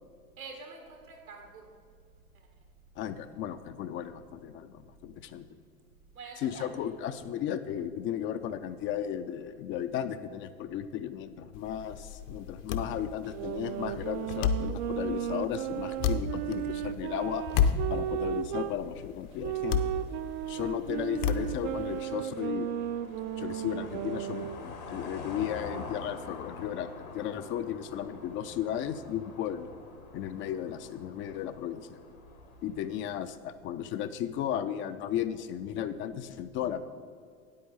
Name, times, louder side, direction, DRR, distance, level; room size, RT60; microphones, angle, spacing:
voice 1, 0.4-1.6 6.1-6.9 20.6-20.7 30.5-30.6, right 4 dB, 90° right, 2 dB, 2.0 m, -46 dB
voice 2, 3.0-5.5 6.4-17.4 17.9-19.9 20.5-22.7 23.4-29.7 30.1-32.0 32.6-36.9, left 10 dB, 30° left, 10 dB, 0.4 m, -35 dB
sound 1, 11.5-22.0, left 6 dB, 60° left, 0.8 m, -33 dB
sound 2, 13.3-18.8 19.4-24.6, right 12 dB, 55° right, 0.5 m, -35 dB
sound 3, 16.5-32.9, left 3 dB, 80° left, 1.6 m, -47 dB
9.4 x 8.6 x 4.1 m, 2.2 s
figure-of-eight pair, 80°, 42 cm